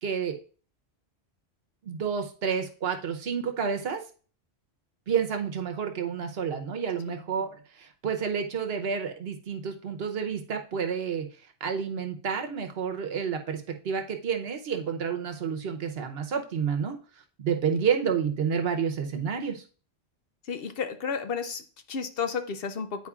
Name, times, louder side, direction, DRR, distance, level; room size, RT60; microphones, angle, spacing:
voice 1, 0.0-0.4 1.8-4.0 5.1-11.3 11.6-17.0 17.4-19.6, right 6 dB, 65° right, 6 dB, 1.0 m, -30 dB
voice 2, 20.4-23.1, left 6 dB, 65° left, 9 dB, 0.8 m, -32 dB
9.6 x 4.3 x 2.4 m, 0.40 s
omnidirectional pair, 1.1 m